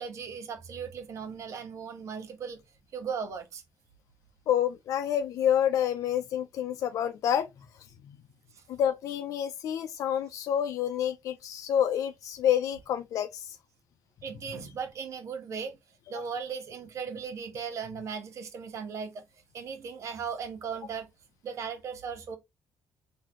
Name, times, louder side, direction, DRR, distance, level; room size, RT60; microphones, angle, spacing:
voice 1, 0.0-2.6 2.9-3.6 14.2-15.8 16.1-19.2 19.5-21.1 21.4-22.4, right 6 dB, 60° right, 1.1 m, -37 dB
voice 2, 4.5-7.5 8.0-8.2 8.7-13.6, left 10 dB, 70° left, 0.5 m, -28 dB
4.1 x 2.7 x 2.9 m
cardioid pair, 105°, 6 cm